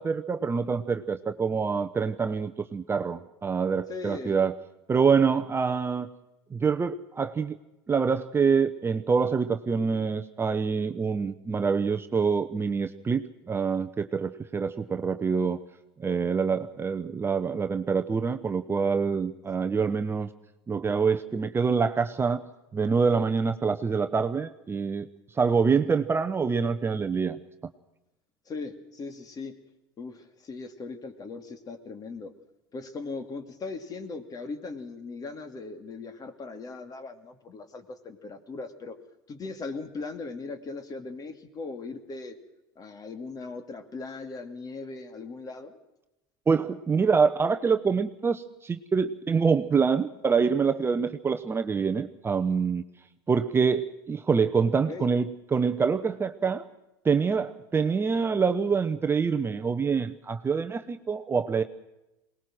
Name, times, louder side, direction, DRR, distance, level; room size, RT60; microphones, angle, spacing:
voice 1, 0.0-4.5 4.9-6.1 6.5-7.6 7.9-15.6 16.0-20.3 20.7-22.4 22.7-25.1 25.3-27.4 46.5-52.8 53.3-56.6 57.0-61.6, right 5 dB, 20° right, 8 dB, 0.8 m, -26 dB
voice 2, 3.9-4.3 28.5-29.6 30.0-32.3 32.7-39.0 39.3-42.4 42.8-45.8 54.9-55.1, left 3 dB, 30° left, 8 dB, 2.6 m, -39 dB
22.5 x 19.5 x 6.3 m, 0.93 s
hypercardioid pair, 90°, 12 cm